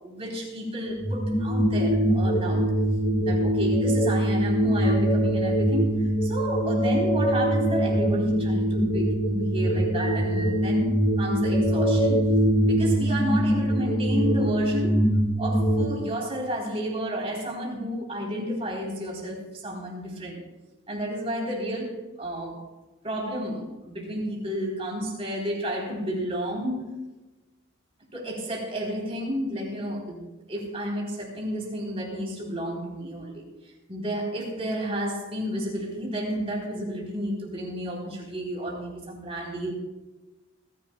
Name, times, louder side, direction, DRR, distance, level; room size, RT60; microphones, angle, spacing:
voice 1, 0.0-2.8 3.2-12.2 12.6-15.0 15.4-20.4 20.9-22.7 23.0-26.9 28.1-33.5 33.9-39.7, equal, 30° right, -2 dB, 3.8 m, -31 dB
sound 1, 1.0-15.8, equal, 30° left, 1.9 m, -23 dB
28.5 x 10.5 x 2.3 m, 1.1 s
head